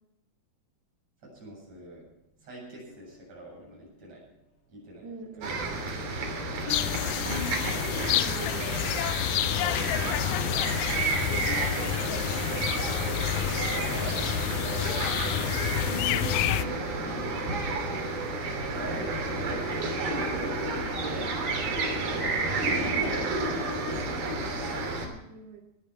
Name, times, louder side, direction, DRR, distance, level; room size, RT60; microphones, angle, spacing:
voice 1, 1.2-2.1 2.4-4.3 4.7-5.1 5.3-5.5 10.1-11.6 13.3-15.4 18.5-19.4 20.7-23.3, right 2 dB, 40° right, -3 dB, 9.2 m, -44 dB
sound 1, 2.9-3.7 6.7-8.7 9.3-9.7 11.5-13.4 15.4-17.8 20.1-21.2, left 2 dB, 35° left, 1.7 m, -46 dB
voice 2, 5.0-5.9 7.2-8.8 12.0-12.3 15.9-16.9 22.8-23.6 24.8-25.6, right 2 dB, 90° right, -1 dB, 4.4 m, -42 dB
sound 2, 5.4-25.1, right 3 dB, 65° right, 5.0 m, -31 dB
sound 3, 6.7-16.7, left 13 dB, 85° left, 1.9 m, -29 dB
20.5 x 11.5 x 4.7 m, 0.86 s
omnidirectional pair, 4.6 m